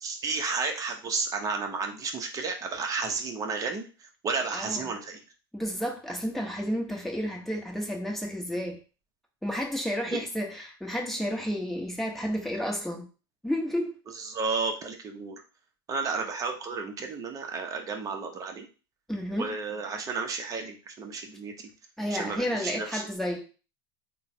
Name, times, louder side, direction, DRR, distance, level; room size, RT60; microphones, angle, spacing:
voice 1, 0.0-3.9 4.2-5.2 10.1-10.2 14.2-15.4 15.9-18.6 19.3-21.6 22.1-23.1, right 4 dB, 30° right, 3 dB, 0.8 m, -32 dB
voice 2, 4.5-4.8 5.5-8.8 9.4-13.1 13.4-13.9 19.1-19.5 22.0-23.4, equal, ahead, 1 dB, 1.0 m, -31 dB
3.6 x 2.2 x 4.2 m, 0.35 s
hypercardioid pair, 105°, 13 cm